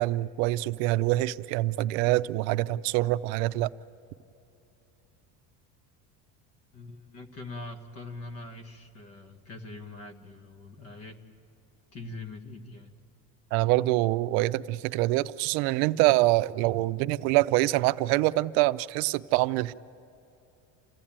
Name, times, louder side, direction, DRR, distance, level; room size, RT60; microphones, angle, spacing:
voice 1, 0.0-3.7 13.5-19.7, right 18 dB, 80° right, 0.6 m, -25 dB
voice 2, 6.7-11.2 11.9-12.9, left 2 dB, 35° left, 1.6 m, -43 dB
28.5 x 15.5 x 8.8 m
cardioid pair, 170°, 40 cm